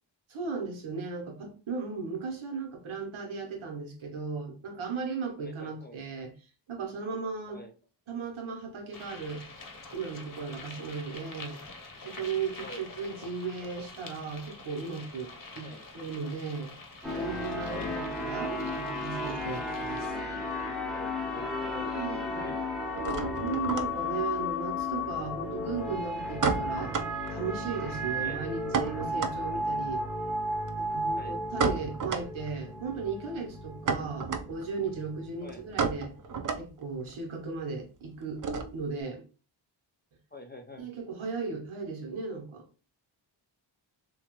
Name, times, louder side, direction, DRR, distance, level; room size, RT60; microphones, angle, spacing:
voice 1, 0.3-6.3 6.7-7.6 8.1-9.4 9.9-11.6 12.0-16.7 17.1-20.1 21.9-22.5 23.4-26.9 27.3-30.0 30.8-36.1 36.5-38.4 38.7-39.2 40.8-42.6, right 5 dB, 85° right, 1.0 m, -36 dB
voice 2, 5.4-6.0 7.5-7.7 12.6-12.8 15.6-15.8 17.7-18.0 20.9-22.6 28.2-28.4 31.1-31.4 33.9-34.1 35.4-35.6 40.3-40.9, left 2 dB, 25° left, 0.4 m, -44 dB
sound 1, 8.9-20.1, left 3 dB, 45° left, 0.8 m, -47 dB
sound 2, 17.0-36.5, left 1 dB, ahead, 0.8 m, -34 dB
sound 3, 19.2-20.8 21.0-21.7 22.0-39.0, right 5 dB, 45° right, 0.5 m, -34 dB
2.8 x 2.3 x 2.9 m
cardioid pair, 60°, 47 cm